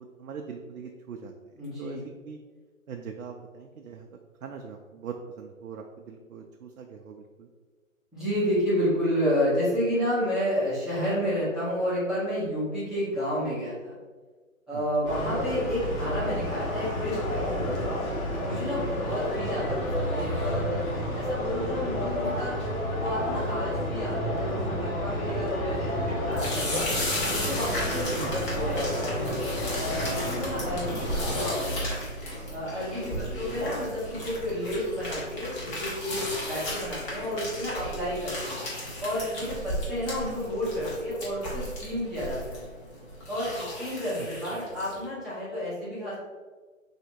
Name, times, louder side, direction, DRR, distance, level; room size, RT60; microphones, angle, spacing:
voice 1, 0.0-2.0 2.2-2.4 2.9-4.1 4.4-7.5 14.7-15.2 28.2-28.9 33.0-33.6 44.2-44.6, right 6 dB, 90° right, 2 dB, 0.6 m, -42 dB
voice 2, 1.6-2.1 8.1-14.0 14.7-18.0 18.4-20.8 21.1-22.5 23.0-26.9 27.2-29.3 29.8-32.0 32.5-38.5 39.0-42.7 43.3-46.1, equal, ahead, -13 dB, 0.6 m, -31 dB
sound 1, 15.1-31.5, equal, 85° left, 1.4 m, -30 dB
sound 2, 26.3-45.0, equal, 25° left, 1.0 m, -35 dB
3.4 x 2.8 x 4.3 m, 1.4 s
hypercardioid pair, 145°, 41 cm